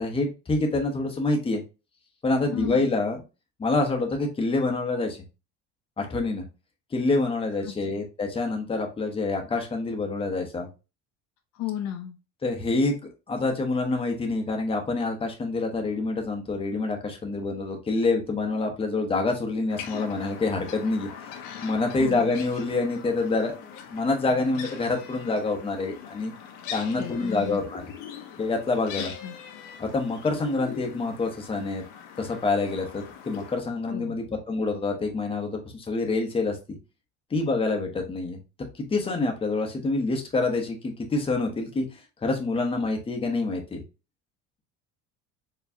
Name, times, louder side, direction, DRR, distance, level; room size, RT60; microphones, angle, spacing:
voice 1, 0.0-1.6 2.2-3.2 3.6-5.2 6.0-6.4 6.9-10.7 12.4-12.9 13.3-21.1 21.6-26.3 26.7-27.9 28.4-29.1 29.8-31.8 32.2-36.6 37.3-38.4 38.9-41.9 42.2-43.8, left 3 dB, 15° left, 3 dB, 1.0 m, -27 dB
voice 2, 2.5-2.8 7.6-8.0 11.5-12.2 22.0-22.3 27.0-27.6 29.0-29.4 33.9-34.2, left 9 dB, 50° left, 5 dB, 0.8 m, -34 dB
sound 1, 19.7-33.6, left 8 dB, 90° left, 1.0 m, -42 dB
4.7 x 3.1 x 2.7 m, 0.29 s
cardioid pair, 140°, 35 cm